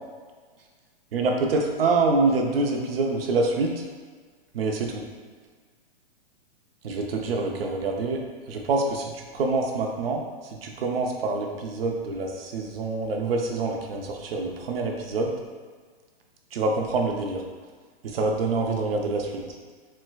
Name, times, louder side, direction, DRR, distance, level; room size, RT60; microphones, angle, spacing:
voice 1, 1.1-3.7 4.5-5.0 6.8-8.2 8.5-10.2 10.6-15.3 16.5-17.4 18.0-19.4, right 3 dB, 70° right, 1 dB, 0.6 m, -26 dB
4.4 x 2.1 x 2.3 m, 1.5 s
hypercardioid pair, 150°, 30 cm